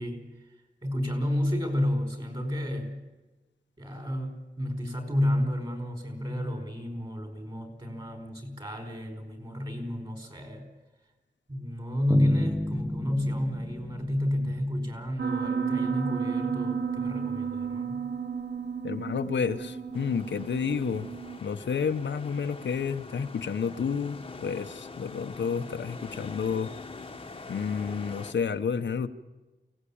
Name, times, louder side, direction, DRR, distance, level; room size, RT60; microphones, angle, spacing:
voice 1, 0.0-2.9 3.8-10.6 11.5-18.0, left 1 dB, 25° right, 6 dB, 4.9 m, -31 dB
sound 1, 12.1-15.1, left 1 dB, ahead, 0.7 m, -33 dB
Piano, 15.2-21.4, right 6 dB, 70° right, 1.1 m, -32 dB
voice 2, 18.8-21.1 21.4-26.7 27.5-29.1, left 6 dB, 80° left, 7 dB, 1.1 m, -30 dB
sound 2, 19.9-28.3, left 3 dB, 30° left, 1.2 m, -44 dB
23.5 x 18.0 x 8.7 m, 1.1 s
wide cardioid pair, 140°, 18 cm